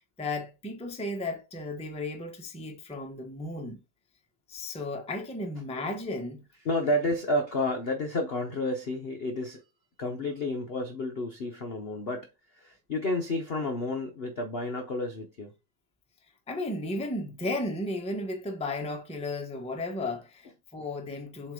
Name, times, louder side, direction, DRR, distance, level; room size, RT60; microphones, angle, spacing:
voice 1, 0.2-3.8 4.5-6.4 16.5-21.5, left 2 dB, 5° left, 0.6 m, -34 dB
voice 2, 6.6-9.6 10.0-12.3 12.5-15.5, left 1 dB, 55° left, 0.6 m, -30 dB
7.5 x 3.2 x 4.9 m
omnidirectional pair, 2.3 m